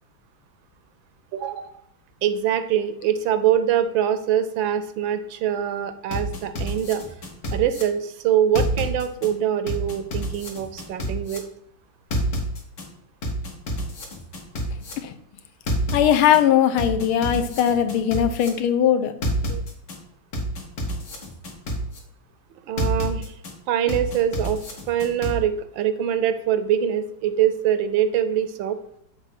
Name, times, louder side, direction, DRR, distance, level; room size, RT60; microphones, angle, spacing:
voice 1, 1.3-1.7 2.2-7.0 7.5-11.4 19.5-19.6 22.7-23.3 23.7-24.6 24.9-28.8, right 9 dB, 75° right, 11 dB, 1.3 m, -23 dB
sound 1, 6.1-7.8 8.6-9.3 9.7-11.4 12.1-12.8 13.2-14.9 15.7-16.4 16.8-18.5 19.2-20.0 20.3-22.0 22.8-23.5 23.9-25.3, left 1 dB, 60° left, 2.0 m, -28 dB
voice 2, 15.9-19.1, left 9 dB, 85° left, 9 dB, 1.6 m, -19 dB
7.2 x 3.5 x 5.8 m, 0.74 s
omnidirectional pair, 2.3 m